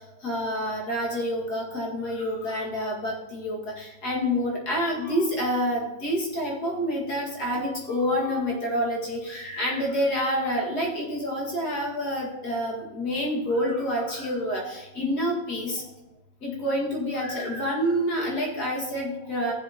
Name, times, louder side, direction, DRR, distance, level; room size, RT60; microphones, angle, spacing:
voice 1, 0.2-15.8 16.4-19.5, equal, 50° left, -3 dB, 2.5 m, -28 dB
15.0 x 7.1 x 2.9 m, 0.98 s
omnidirectional pair, 2.2 m